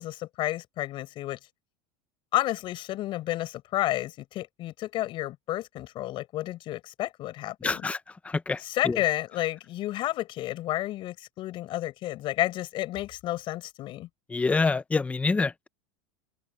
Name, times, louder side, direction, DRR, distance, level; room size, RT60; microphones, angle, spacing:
voice 1, 0.0-1.4 2.3-7.9 8.6-14.1, left 15 dB, 40° left, 5.9 m, -31 dB
voice 2, 7.6-8.0 8.2-8.6 8.8-9.0 14.3-15.7, left 4 dB, 10° left, 0.8 m, -26 dB
supercardioid pair, 150°, 13 cm